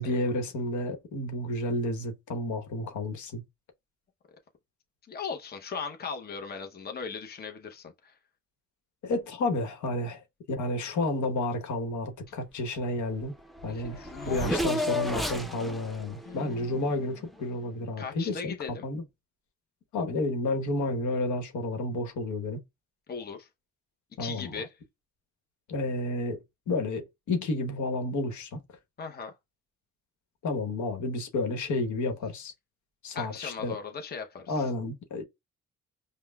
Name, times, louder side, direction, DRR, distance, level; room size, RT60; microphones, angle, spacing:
voice 1, 0.0-3.4 9.0-13.3 13.6-18.5 18.8-19.0 19.9-22.6 24.2-24.6 25.7-28.6 30.4-32.5 33.0-33.8 34.5-35.2, left 2 dB, 70° left, 1.1 m, -31 dB
voice 2, 5.1-8.1 13.7-15.7 16.2-16.8 18.0-18.9 23.1-23.5 24.2-24.7 29.0-29.3 33.1-34.7, left 5 dB, 30° left, 0.8 m, -39 dB
Race car auto racing / Accelerating revving vroom, 13.2-13.3 13.5-17.5, left 1 dB, ahead, 0.6 m, -33 dB
5.3 x 2.2 x 2.3 m
cardioid pair, 90°, 30 cm